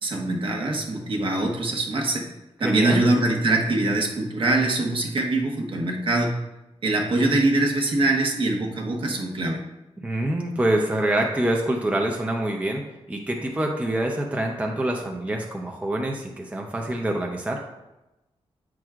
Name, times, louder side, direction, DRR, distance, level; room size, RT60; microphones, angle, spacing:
voice 1, 0.0-2.2 2.6-6.3 6.8-9.6, right 2 dB, 50° right, 2 dB, 1.1 m, -23 dB
voice 2, 2.6-3.0 10.0-12.8 13.1-17.6, right 1 dB, 10° right, 1 dB, 0.6 m, -26 dB
8.8 x 6.1 x 2.4 m, 0.97 s
wide cardioid pair, 170°, 11 cm